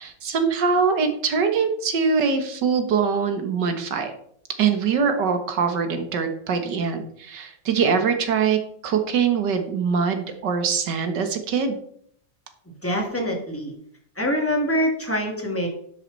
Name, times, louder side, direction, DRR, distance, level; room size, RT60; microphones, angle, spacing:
voice 1, 0.0-4.1 4.6-11.8, right 6 dB, 75° right, 7 dB, 2.0 m, -23 dB
voice 2, 12.8-13.7 14.2-15.7, equal, 5° left, 1 dB, 2.1 m, -24 dB
11.5 x 8.0 x 4.0 m, 0.66 s
omnidirectional pair, 1.9 m